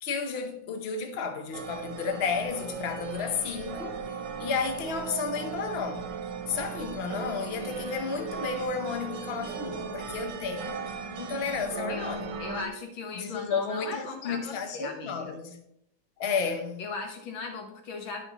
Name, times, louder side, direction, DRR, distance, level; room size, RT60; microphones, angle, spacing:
voice 1, 0.0-4.0 4.4-6.1 6.5-10.8 11.2-12.3 13.1-15.6 16.2-16.8, left 5 dB, 50° left, 0.7 m, -32 dB
sound 1, 1.5-12.7, right 5 dB, 70° right, 1.3 m, -37 dB
voice 2, 12.4-15.3 16.8-18.2, left 3 dB, 75° left, 1.9 m, -38 dB
11.0 x 5.4 x 3.0 m
omnidirectional pair, 2.1 m